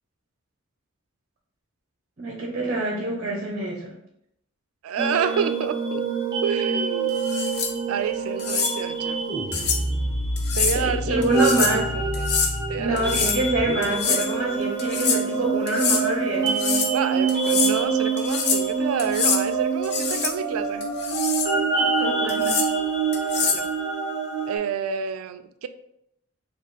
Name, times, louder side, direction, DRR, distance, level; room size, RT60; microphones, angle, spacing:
voice 1, 2.2-3.9 10.7-11.9 12.8-16.4 21.6-22.6, right 2 dB, 40° right, -1 dB, 0.7 m, -26 dB
voice 2, 4.8-6.1 6.4-7.1 7.9-9.3 10.5-12.3 12.7-13.3 16.4-20.9 23.4-23.7 24.5-25.7, right 6 dB, 85° right, 11 dB, 0.4 m, -29 dB
sound 1, 5.0-24.6, right 4 dB, 20° right, 1.0 m, -26 dB
sound 2, 7.2-7.7 8.4-8.7 9.5-9.8 10.4-10.8 11.2-11.8 12.1-12.5 13.0-13.4 13.8-14.3 14.8-15.2 15.7-16.0 16.5-16.9 17.3-17.7 18.2-18.7 19.0-19.4 19.8-20.3 20.8-21.5 22.3-22.7 23.1-23.7, left 6 dB, 50° left, 0.6 m, -25 dB
4.8 x 2.4 x 4.0 m, 0.77 s
head